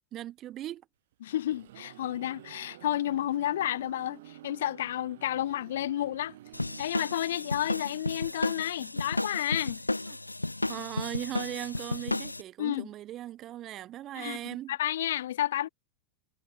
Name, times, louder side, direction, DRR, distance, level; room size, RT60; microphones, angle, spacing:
voice 1, 0.1-0.8 10.1-10.2 10.7-14.7, right 13 dB, 30° right, 0.9 m, -38 dB
sound 1, 1.1-8.8, right 14 dB, 55° right, 1.6 m, -51 dB
voice 2, 1.2-6.4 6.8-9.8 12.6-12.9 14.1-14.4 14.7-15.7, left 12 dB, 60° left, 0.6 m, -31 dB
sound 2, 6.5-12.4, left 2 dB, 85° left, 0.9 m, -33 dB
figure-of-eight pair, 90°, 0 cm